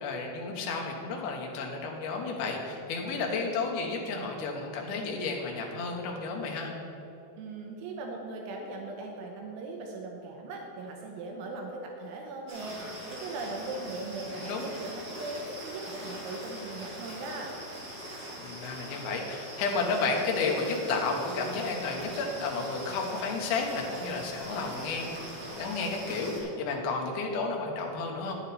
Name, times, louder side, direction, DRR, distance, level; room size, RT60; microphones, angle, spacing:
voice 1, 0.0-6.7 14.3-14.7 18.4-25.1 25.4-28.3, left 4 dB, 70° left, 0 dB, 2.5 m, -32 dB
voice 2, 7.4-17.5, right 3 dB, 80° right, 1 dB, 3.2 m, -39 dB
sound 1, 12.5-26.4, equal, 30° right, 2.1 m, -42 dB
10.0 x 9.4 x 4.2 m, 2.9 s
omnidirectional pair, 5.6 m